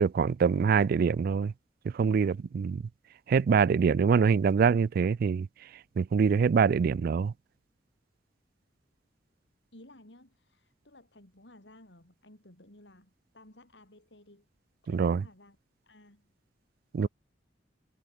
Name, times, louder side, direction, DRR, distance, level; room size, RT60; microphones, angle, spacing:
voice 1, 0.0-1.5 1.9-2.8 3.3-5.5 6.0-7.3 14.9-15.2 16.9-17.1, right 6 dB, 55° right, 0.3 m, -24 dB
voice 2, 9.7-14.5 14.8-15.6 15.8-16.3 17.0-17.1, left 1 dB, 70° left, 5.5 m, -56 dB
head